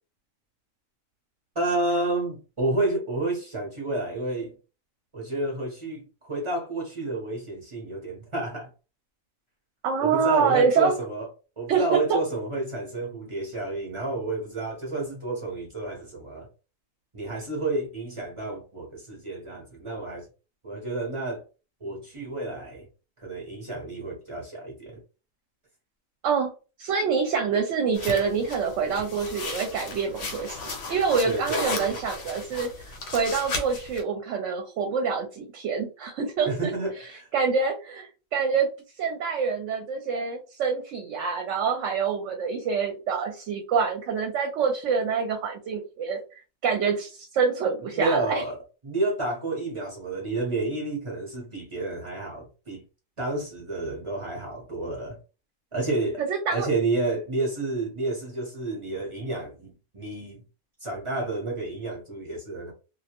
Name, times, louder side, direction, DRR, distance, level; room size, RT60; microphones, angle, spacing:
voice 1, 1.5-4.5 5.1-8.7 10.0-11.3 11.6-16.5 17.1-20.3 20.6-21.4 21.8-22.9 23.2-25.0 31.2-32.0 36.5-37.3 47.9-48.6 48.8-52.8 53.2-55.2 55.7-56.2 56.5-60.4 60.8-62.7, right 2 dB, 30° right, 0.6 m, -30 dB
voice 2, 9.8-10.9 11.7-11.8 12.1-12.2 26.2-26.5 26.8-36.7 37.3-38.7 39.0-48.4 56.2-56.7, right 5 dB, 70° right, 0.8 m, -26 dB
sound 1, 27.9-34.0, left 3 dB, 65° left, 0.9 m, -35 dB
2.3 x 2.1 x 2.8 m
omnidirectional pair, 1.4 m